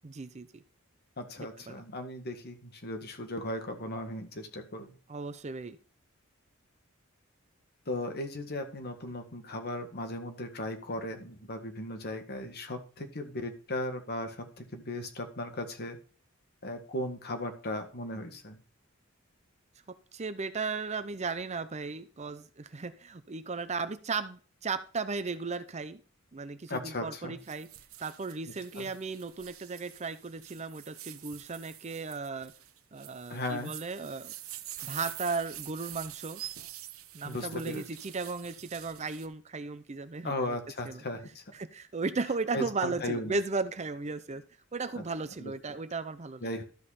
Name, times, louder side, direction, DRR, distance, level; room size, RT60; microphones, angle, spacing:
voice 1, 0.0-0.6 1.4-1.8 5.1-5.8 20.1-26.0 26.3-27.7 28.0-32.5 32.9-34.3 34.8-36.4 37.1-40.6 40.9-41.0 41.5-44.4 44.7-46.5, right 4 dB, 35° right, 12 dB, 0.6 m, -36 dB
voice 2, 1.2-4.9 7.9-16.0 16.6-18.6 26.7-27.4 28.8-28.9 33.3-33.7 37.2-37.8 40.2-41.4 42.5-43.4 44.9-45.0 45.4-45.5 46.4-46.6, left 1 dB, 50° left, 6 dB, 1.7 m, -37 dB
sound 1, 27.4-39.3, right 13 dB, 85° right, 0.9 m, -46 dB
13.0 x 5.5 x 4.1 m, 0.38 s
head